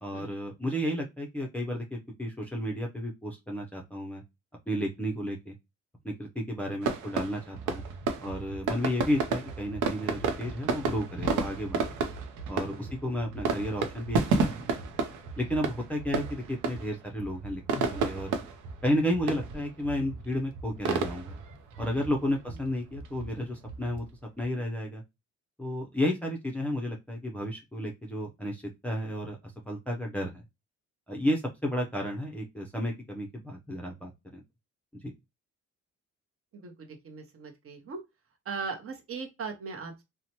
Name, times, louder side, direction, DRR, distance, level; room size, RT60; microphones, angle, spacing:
voice 1, 0.0-4.2 4.7-5.5 6.0-7.8 8.2-11.9 12.5-14.5 15.4-18.4 18.8-21.4 21.8-24.1 24.4-25.0 25.6-29.4 29.7-30.4 31.1-34.4 35.0-35.1, equal, 5° left, 0 dB, 0.5 m, -32 dB
sound 1, 6.8-24.4, right 4 dB, 80° right, 0.6 m, -33 dB
voice 2, 36.5-38.0 38.4-40.0, right 5 dB, 45° right, 3 dB, 0.9 m, -39 dB
2.8 x 2.2 x 2.7 m, 0.22 s
cardioid pair, 90°, 30 cm